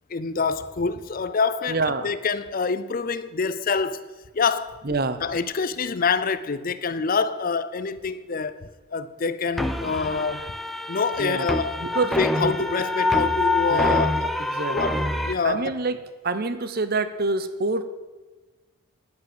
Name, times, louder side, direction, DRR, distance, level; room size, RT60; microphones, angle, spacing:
voice 1, 0.1-4.0 4.3-4.8 5.2-10.5 10.9-11.9 12.2-14.3 14.6-15.7, left 4 dB, 40° left, 0.5 m, -26 dB
voice 2, 1.7-2.1 4.8-5.3 11.2-11.5 11.8-12.5 13.7-14.1 14.5-15.0 15.4-16.0 16.2-17.8, right 3 dB, 45° right, 0.8 m, -27 dB
sound 1, 9.6-15.3, left 2 dB, ahead, 0.6 m, -26 dB
10.5 x 9.7 x 7.9 m
head